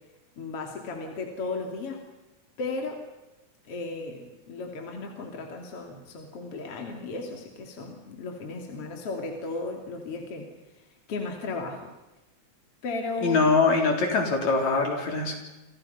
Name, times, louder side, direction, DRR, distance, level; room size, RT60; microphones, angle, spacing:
voice 1, 0.4-2.1 2.6-3.0 3.6-10.5 10.8-11.9 12.8-13.5, left 3 dB, 50° left, 2 dB, 3.6 m, -35 dB
voice 2, 13.2-15.4, left 4 dB, 65° left, 2 dB, 5.1 m, -23 dB
29.5 x 26.5 x 5.7 m, 1.0 s
omnidirectional pair, 3.4 m